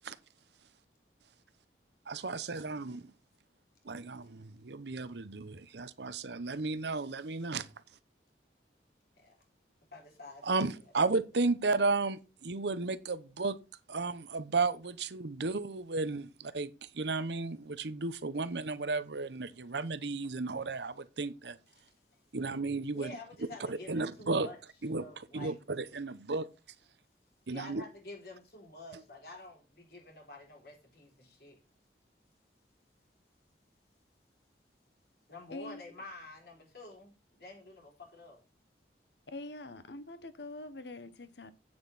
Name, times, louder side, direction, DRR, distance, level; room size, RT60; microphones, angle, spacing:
voice 1, 2.1-3.1 3.8-7.7 10.4-13.6 13.9-21.6 22.3-23.1 23.7-24.5 24.8-25.0 25.3-26.5 27.5-27.8, right 3 dB, 80° right, 0.8 m, -33 dB
voice 2, 9.9-10.6 21.8-21.9 22.9-24.6 25.0-25.6 27.5-31.6 35.3-38.4, left 2 dB, 60° left, 3.8 m, -49 dB
voice 3, 35.5-35.8 39.3-41.5, left 2 dB, 80° left, 1.1 m, -44 dB
9.0 x 7.7 x 4.1 m
head